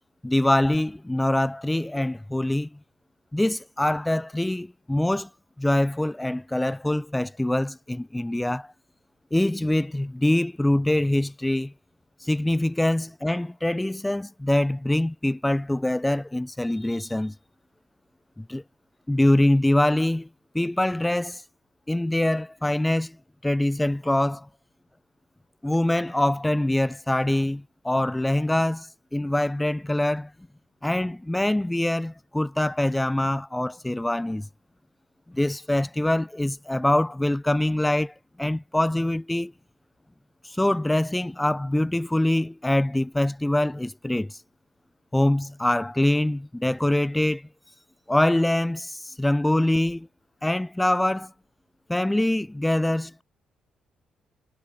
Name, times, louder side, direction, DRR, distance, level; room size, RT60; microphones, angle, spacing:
voice 1, 0.2-2.8 3.3-5.3 5.6-8.7 9.3-11.7 12.2-17.3 18.4-18.6 19.1-20.3 20.5-21.4 21.9-23.2 23.4-24.5 25.6-30.3 30.8-34.5 35.3-39.5 40.5-44.4 45.1-47.5 48.1-50.1 50.4-51.3 51.9-53.2, left 1 dB, 10° left, 5.9 m, -24 dB
cardioid pair, 90°, 0 cm